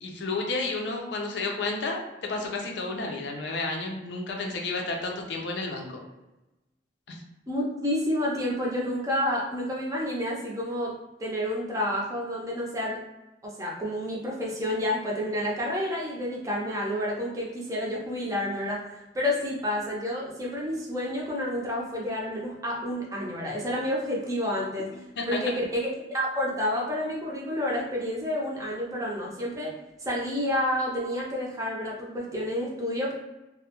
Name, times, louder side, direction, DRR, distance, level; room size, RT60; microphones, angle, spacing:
voice 1, 0.0-6.0 7.1-7.2 24.9-25.4, left 3 dB, 75° left, 1 dB, 0.5 m, -31 dB
voice 2, 7.5-10.9 11.2-13.0 13.4-24.9 25.3-29.7 30.0-33.1, left 1 dB, 20° right, -3 dB, 0.5 m, -29 dB
2.3 x 2.0 x 2.8 m, 1.0 s
head